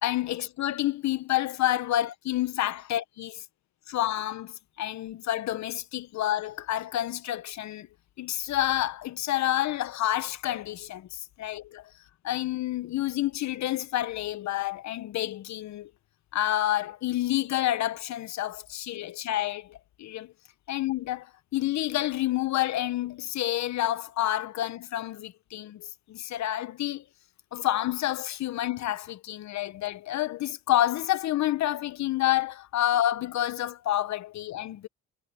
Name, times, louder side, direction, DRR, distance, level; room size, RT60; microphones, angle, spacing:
voice 1, 0.0-3.4 3.9-7.9 8.2-11.8 12.2-15.9 16.3-20.3 20.7-21.3 21.5-27.0 27.5-34.9, left 13 dB, 60° left, 1.3 m, -29 dB
supercardioid pair, 85°, 32 cm